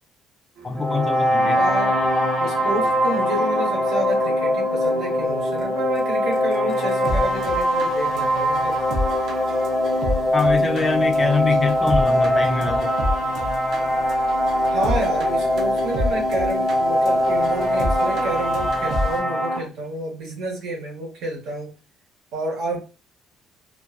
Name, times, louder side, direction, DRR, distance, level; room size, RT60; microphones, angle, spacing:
voice 1, 0.6-1.6 10.3-12.9, left 4 dB, 25° left, 0.3 m, -24 dB
sound 1, 0.6-4.1 4.8-4.9 5.6-5.7 5.9-6.0 6.3-19.2, equal, 55° right, 0.6 m, -31 dB
sound 2, 0.8-19.6, equal, 15° right, 1.0 m, -22 dB
voice 2, 1.6-2.0 2.4-8.8 14.7-21.7 22.3-22.8, right 2 dB, 70° right, 1.0 m, -30 dB
2.5 x 2.2 x 2.4 m
cardioid pair, 140°, 0 cm